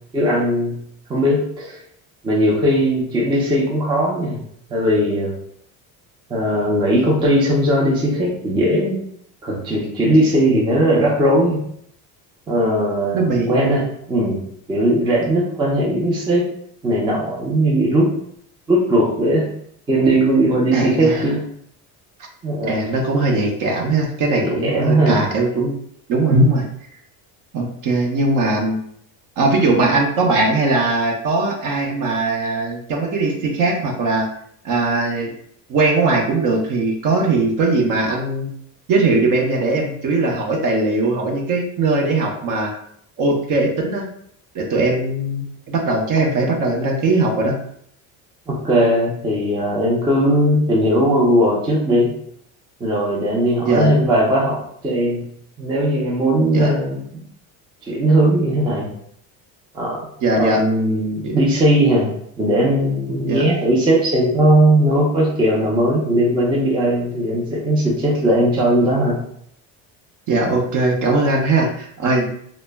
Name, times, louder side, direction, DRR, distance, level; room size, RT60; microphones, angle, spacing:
voice 1, 0.1-0.8 1.1-1.8 2.2-4.4 4.7-5.3 6.3-9.0 9.4-11.6 12.5-16.5 16.8-18.1 18.7-19.5 19.9-21.4 22.4-22.7 24.4-25.3 48.5-52.1 52.8-54.6 54.8-55.2 55.6-57.2 57.9-58.9 59.7-60.1 60.3-62.1 62.4-69.2, right 1 dB, 15° right, -3 dB, 0.4 m, -18 dB
voice 2, 13.1-13.8 20.7-21.3 22.7-25.8 26.1-26.6 27.5-28.8 29.4-34.3 34.6-35.3 35.7-38.5 38.9-42.7 43.2-44.1 44.5-47.6 53.6-53.9 56.5-56.7 60.2-60.6 61.2-61.3 63.3-63.4 70.3-72.3, right 2 dB, 50° right, 1 dB, 0.6 m, -19 dB
2.1 x 2.0 x 3.2 m, 0.67 s
cardioid pair, 135°, 39 cm